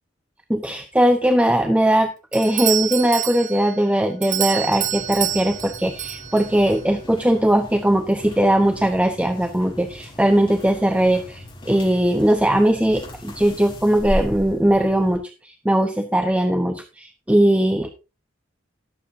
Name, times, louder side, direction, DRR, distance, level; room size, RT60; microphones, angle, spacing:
voice 1, 0.5-17.9, right 1 dB, 5° right, 5 dB, 1.0 m, -19 dB
Doorbell, 2.3-6.8, right 13 dB, 40° right, 0.5 m, -27 dB
sound 1, 4.7-15.2, equal, 25° left, 5.7 m, -36 dB
18.5 x 7.5 x 2.7 m, 0.30 s
head